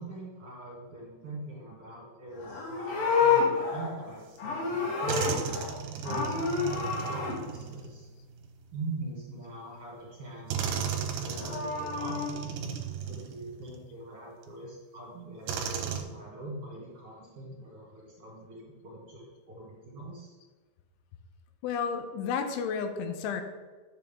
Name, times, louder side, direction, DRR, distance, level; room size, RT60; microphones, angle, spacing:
voice 1, 0.0-5.6 5.9-8.1 8.7-12.6 13.0-20.3, right 2 dB, 40° right, -6 dB, 2.3 m, -42 dB
Livestock farm animals working animals, 2.3-5.8 6.0-7.3 11.1-12.3, left 5 dB, 60° left, 3.0 m, -29 dB
door stopper twang, 4.4-4.5 5.1-8.7 9.7-9.8 10.5-13.8 14.4-14.5 15.5-16.0, right 7 dB, 70° right, 2.6 m, -35 dB
voice 2, 21.6-23.4, left 6 dB, 85° left, 7 dB, 3.3 m, -31 dB
11.0 x 7.2 x 3.6 m, 1.3 s
omnidirectional pair, 5.3 m